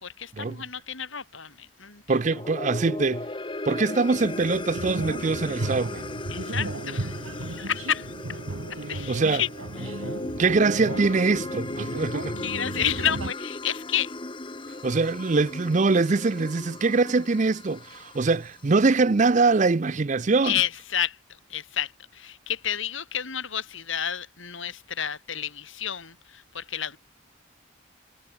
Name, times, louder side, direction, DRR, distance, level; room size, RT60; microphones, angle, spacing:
voice 1, 0.0-2.2 6.3-8.4 8.9-9.5 9.8-9.9 12.4-14.1 20.4-21.2 21.5-27.0, left 9 dB, 65° left, 3.9 m, -30 dB
voice 2, 2.1-3.3 3.7-6.0 9.1-9.4 10.4-12.4 14.8-20.6, right 3 dB, 35° right, 0.5 m, -23 dB
sound 1, 2.2-18.6, left 2 dB, 25° left, 1.0 m, -37 dB
sound 2, 4.1-13.3, right 2 dB, 85° right, 1.5 m, -35 dB
head